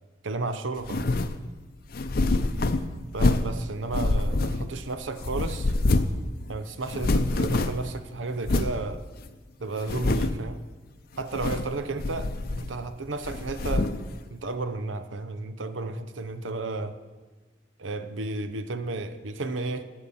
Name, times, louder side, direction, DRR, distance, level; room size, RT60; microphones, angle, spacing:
voice 1, 0.2-1.1 3.1-5.7 6.5-9.0 9.6-10.6 11.2-12.3 12.6-13.9 14.3-17.0 17.8-19.8, right 3 dB, 80° right, 10 dB, 0.8 m, -33 dB
sound 1, 0.8-1.4 1.9-3.6 3.9-4.9 5.2-6.2 6.5-6.6 6.8-7.9 8.4-8.8 9.3-9.4 9.8-10.5 11.2-11.7 12.0-12.9 13.2-14.0, left 2 dB, 50° left, 0.5 m, -26 dB
9.1 x 8.8 x 7.0 m, 1.3 s
head